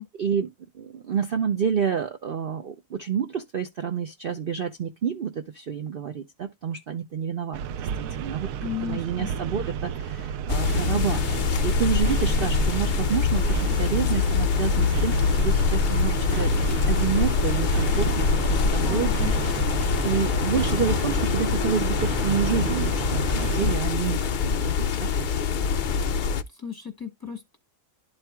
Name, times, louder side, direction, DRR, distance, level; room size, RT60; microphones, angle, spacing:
voice 1, 0.0-16.5 16.9-19.2 20.0-25.3, right 7 dB, 55° right, 0.7 m, -29 dB
sound 1, 7.5-23.8, right 8 dB, 75° right, 1.0 m, -32 dB
voice 2, 8.6-9.3 18.8-19.3 26.6-27.6, left 9 dB, 15° left, 1.0 m, -34 dB
sound 2, 10.5-26.4, left 5 dB, 70° left, 0.4 m, -24 dB
12.0 x 4.4 x 2.2 m
omnidirectional pair, 1.5 m